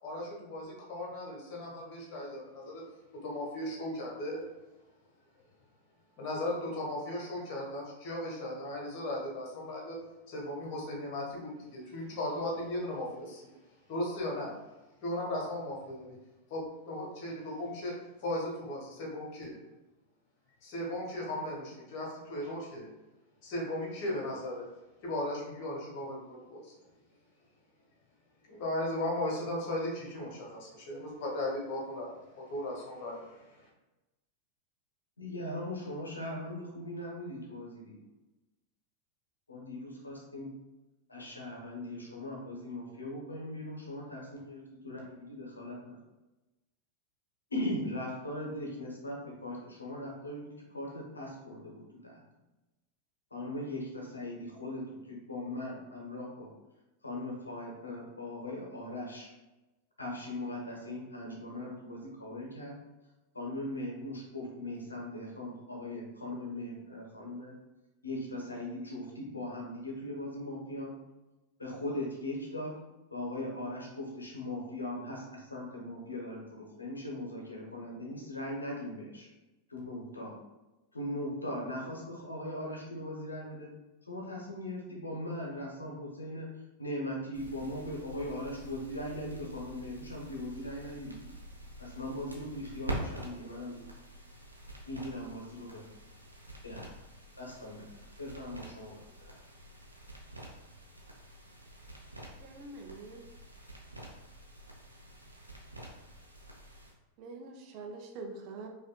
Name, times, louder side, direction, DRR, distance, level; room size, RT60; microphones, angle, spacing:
voice 1, 0.0-2.8 3.2-4.5 6.2-10.0 10.3-13.6 13.9-14.5 15.0-16.2 16.5-17.9 18.2-19.6 20.6-22.9 23.4-24.7 25.0-26.7 28.4-33.7, left 1 dB, 45° left, -2 dB, 1.2 m, -37 dB
voice 2, 35.2-38.0 39.5-40.6 41.1-46.0 47.5-52.2 53.3-56.5 57.0-59.3 60.0-62.8 63.3-67.5 68.0-71.0 71.6-72.8 73.1-79.3 79.7-80.3 80.9-83.7 84.0-86.5 86.8-91.3 91.8-93.8 94.9-95.8 96.6-97.0 97.4-99.4, left 1 dB, 80° left, -2 dB, 0.8 m, -39 dB
sound 1, 87.3-106.9, right 1 dB, 85° right, 0.6 m, -46 dB
voice 3, 102.4-103.2 107.2-108.7, right 3 dB, 40° right, 1 dB, 0.5 m, -44 dB
4.9 x 2.5 x 2.2 m, 1.1 s
figure-of-eight pair, 90°, 0 cm